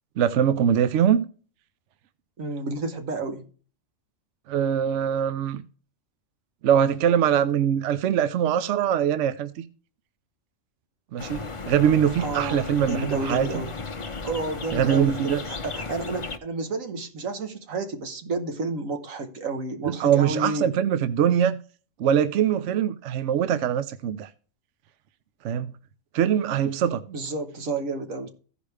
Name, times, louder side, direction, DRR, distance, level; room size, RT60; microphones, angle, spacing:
voice 1, 0.2-1.3 4.5-5.6 6.6-9.7 11.1-13.6 14.7-15.4 19.8-21.6 22.0-24.3 25.4-25.7 26.1-27.0, right 9 dB, 70° right, 0.9 m, -22 dB
voice 2, 2.4-3.5 12.2-13.7 14.2-20.7 27.1-28.3, right 3 dB, 90° right, 1.6 m, -31 dB
sound 1, 11.2-16.4, left 4 dB, 35° left, 0.6 m, -35 dB
15.0 x 5.1 x 3.3 m
omnidirectional pair, 1.4 m